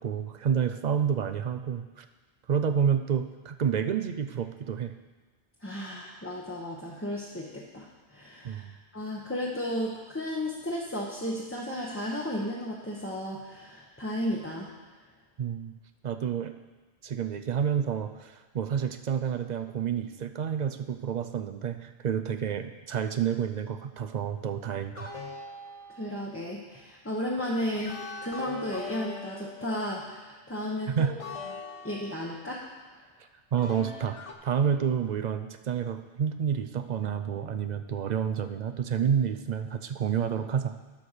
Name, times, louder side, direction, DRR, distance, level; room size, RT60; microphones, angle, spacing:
voice 1, 0.0-2.1 2.5-4.9 8.4-8.7 15.4-15.7 16.0-16.5 17.0-25.1 31.0-31.2 33.5-40.8, right 8 dB, 55° right, 9 dB, 0.5 m, -29 dB
voice 2, 5.6-8.6 8.9-14.7 26.0-28.0 28.2-31.1 31.8-32.6, left 1 dB, 15° left, -5 dB, 0.9 m, -34 dB
sound 1, 24.9-26.4 27.8-30.1 31.2-32.6 33.5-34.3, left 3 dB, 35° left, 0.7 m, -41 dB
11.5 x 4.4 x 6.6 m, 1.3 s
omnidirectional pair, 1.1 m